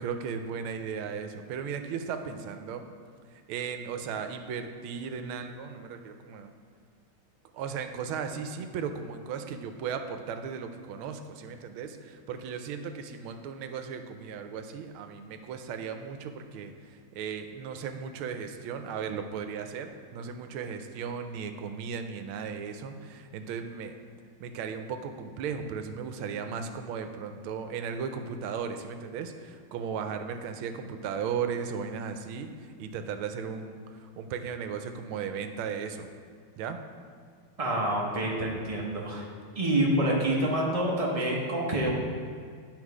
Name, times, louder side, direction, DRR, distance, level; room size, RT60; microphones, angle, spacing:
voice 1, 0.0-2.9 3.3-6.5 7.5-24.0 24.4-36.1 36.6-36.8, right 6 dB, 80° right, 7 dB, 1.4 m, -36 dB
voice 2, 37.6-39.2 39.5-41.9, right 1 dB, 60° right, -3 dB, 0.3 m, -27 dB
9.9 x 3.9 x 4.8 m, 2.1 s
omnidirectional pair, 2.3 m